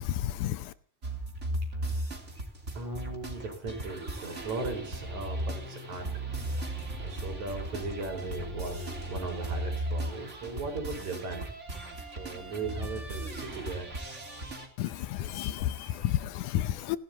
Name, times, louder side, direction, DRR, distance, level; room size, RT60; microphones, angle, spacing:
voice 1, 0.2-0.6 14.8-15.7 16.0-17.0, left 13 dB, 75° left, 2.2 m, -30 dB
sound 1, 1.0-14.7, right 1 dB, 20° right, 2.9 m, -36 dB
voice 2, 2.7-6.1 6.5-11.4 12.2-13.9 14.9-16.2, right 3 dB, 60° right, 6.1 m, -38 dB
29.5 x 12.5 x 2.9 m
omnidirectional pair, 3.7 m